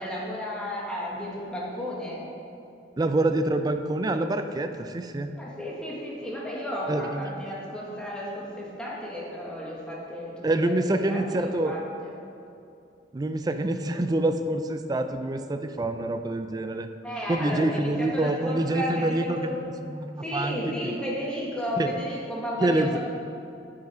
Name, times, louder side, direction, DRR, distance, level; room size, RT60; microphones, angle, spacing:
voice 1, 0.0-2.2 5.3-10.8 11.1-12.1 17.0-19.6 20.2-23.0, equal, 5° left, -6 dB, 1.6 m, -33 dB
voice 2, 3.0-5.3 6.9-7.4 10.4-11.8 13.1-16.9 17.3-20.9 21.8-21.9 22.6-23.0, right 1 dB, 20° right, 8 dB, 0.4 m, -26 dB
9.2 x 5.7 x 5.0 m, 2.6 s
head